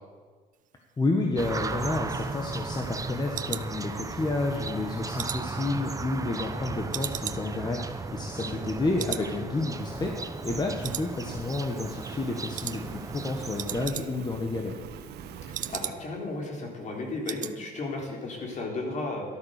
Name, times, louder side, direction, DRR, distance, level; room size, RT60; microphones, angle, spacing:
voice 1, 1.0-14.7, left 3 dB, 25° left, 2 dB, 1.6 m, -30 dB
sound 1, 1.4-13.9, right 4 dB, 20° right, 0.9 m, -36 dB
sound 2, 1.6-4.4 4.8-6.5 6.9-8.7 9.0-9.3 9.6-9.7 10.2-10.6 10.8-11.6 11.9-12.2 12.5-12.8 13.1-13.2 13.4-14.4 14.7-16.3 16.6-16.7 17.0-17.6 17.9-18.1 18.4-18.5, right 11 dB, 50° right, 0.6 m, -38 dB
voice 2, 6.3-6.6 8.4-8.6 15.5-19.2, left 2 dB, 45° left, 1 dB, 3.9 m, -35 dB
Fire, 9.7-15.8, right 7 dB, 75° right, 1.4 m, -44 dB
13.0 x 12.5 x 6.7 m, 1.5 s
cardioid pair, 110°, 17 cm